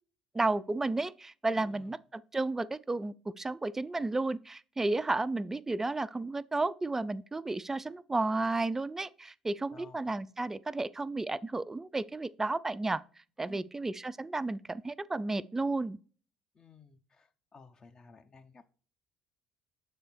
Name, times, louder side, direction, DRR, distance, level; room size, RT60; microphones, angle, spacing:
voice 1, 0.3-2.0 2.3-13.0 13.4-16.0, right 2 dB, 15° right, 0.4 m, -32 dB
voice 2, 1.5-1.9 9.7-10.1 13.5-13.7 16.5-18.7, left 4 dB, 35° left, 0.7 m, -55 dB
7.2 x 3.4 x 4.3 m
figure-of-eight pair, 55°, 2 cm